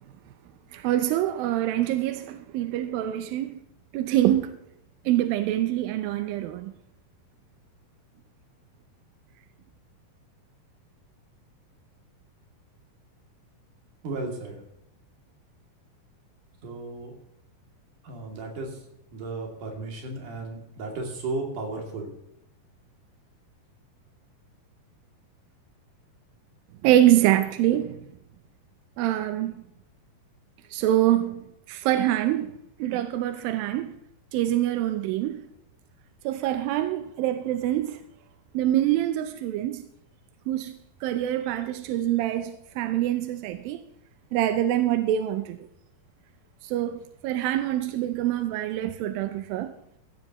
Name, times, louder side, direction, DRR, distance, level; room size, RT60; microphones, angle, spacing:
voice 1, 0.7-3.6 3.9-4.6 5.1-6.7 26.8-28.0 29.0-29.6 30.7-34.0 34.3-35.5 36.3-38.0 38.5-39.9 40.5-43.8 44.3-45.6 46.6-49.7, right 13 dB, 80° right, 2.1 m, -25 dB
voice 2, 14.0-14.6 16.6-17.2 18.0-18.8 19.1-22.1, right 3 dB, 55° right, 3.8 m, -34 dB
15.5 x 14.5 x 3.0 m
omnidirectional pair, 4.7 m